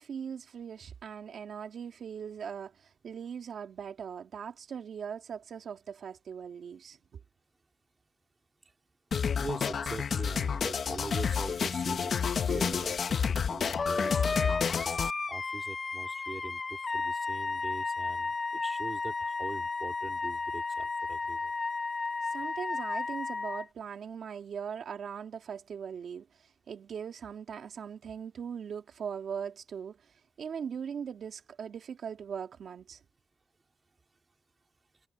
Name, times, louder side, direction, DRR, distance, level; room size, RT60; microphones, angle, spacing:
voice 1, 0.0-7.2 22.2-33.0, right 7 dB, 85° right, 2.7 m, -40 dB
sound 1, 9.1-15.1, left 6 dB, 70° left, 1.2 m, -30 dB
voice 2, 9.4-14.8 15.3-21.5, right 3 dB, 35° right, 4.0 m, -43 dB
Wind instrument woodwind instrument, 13.8-23.6, left 4 dB, 40° left, 1.6 m, -33 dB
wide cardioid pair, 105°, 0 cm